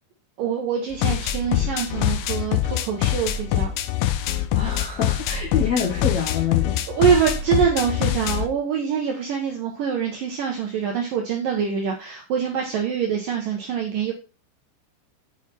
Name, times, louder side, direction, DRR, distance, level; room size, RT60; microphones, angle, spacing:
voice 1, 0.4-3.7 6.9-14.1, right 7 dB, 75° right, 1 dB, 2.0 m, -24 dB
sound 1, 0.9-8.5, left 12 dB, 90° left, 3.2 m, -24 dB
voice 2, 4.5-6.8, left 6 dB, 70° left, -1 dB, 1.7 m, -26 dB
7.2 x 6.5 x 4.2 m, 0.32 s
omnidirectional pair, 5.3 m